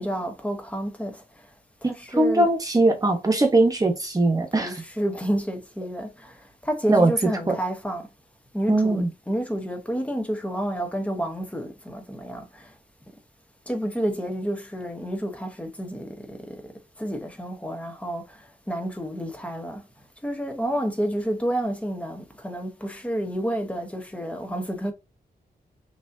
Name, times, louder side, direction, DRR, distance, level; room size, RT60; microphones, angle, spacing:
voice 1, 0.0-1.5 1.8-2.5 4.6-8.1 8.5-12.8 13.7-16.7 17.0-19.8 20.2-24.9, equal, 10° left, 0.9 m, -30 dB
voice 2, 1.8-4.7 6.9-7.1 7.5-7.6 8.7-9.1, right 2 dB, 20° right, 1.1 m, -20 dB
6.0 x 2.8 x 2.7 m
wide cardioid pair, 135°, 16 cm